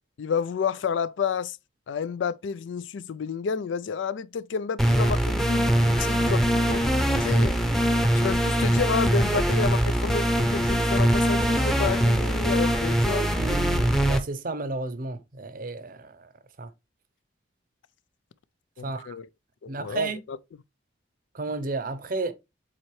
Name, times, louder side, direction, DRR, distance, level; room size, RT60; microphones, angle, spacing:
voice 1, 0.2-1.6 1.9-6.9 7.2-7.6 8.1-13.2 18.8-19.3 19.6-20.4, left 6 dB, 80° left, 0.4 m, -30 dB
sound 1, 4.8-14.2, equal, ahead, 0.7 m, -22 dB
voice 2, 13.2-16.3 16.6-16.7 18.8-19.1 19.7-20.2 21.3-22.3, right 3 dB, 45° right, 0.6 m, -32 dB
7.4 x 4.3 x 3.1 m
head